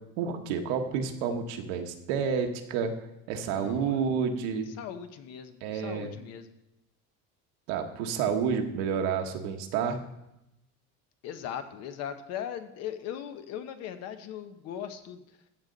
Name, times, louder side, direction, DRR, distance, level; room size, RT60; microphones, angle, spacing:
voice 1, 0.2-2.9 3.3-4.7 5.6-6.1 7.7-10.0, right 6 dB, 90° right, 5 dB, 1.3 m, -29 dB
voice 2, 3.4-4.1 4.8-6.5 11.2-15.2, left 9 dB, 50° left, 9 dB, 0.9 m, -39 dB
15.0 x 6.7 x 4.0 m, 0.86 s
cardioid pair, 170°, 33 cm